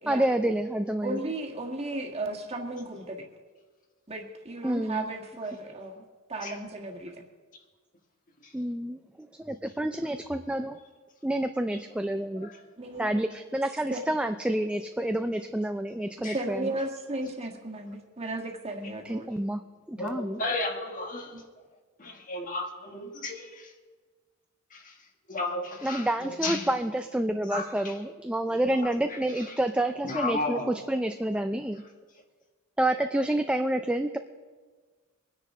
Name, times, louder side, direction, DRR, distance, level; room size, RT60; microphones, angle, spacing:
voice 1, 0.1-1.2 4.6-5.1 8.5-9.0 9.5-10.8 11.2-12.5 13.0-16.7 19.0-19.6 19.9-20.4 25.8-31.8 32.8-34.2, right 1 dB, 5° right, 7 dB, 0.4 m, -28 dB
voice 2, 1.0-3.2 4.1-6.0 6.3-7.2 12.8-13.1 13.9-14.0 16.3-19.3 21.3-21.4, right 2 dB, 30° right, 1 dB, 1.6 m, -35 dB
voice 3, 20.0-21.3 22.0-23.7 24.7-24.9 25.3-26.7 27.5-27.6 30.0-30.7, left 2 dB, 40° left, 3 dB, 1.5 m, -33 dB
24.0 x 10.0 x 3.7 m, 1.4 s
head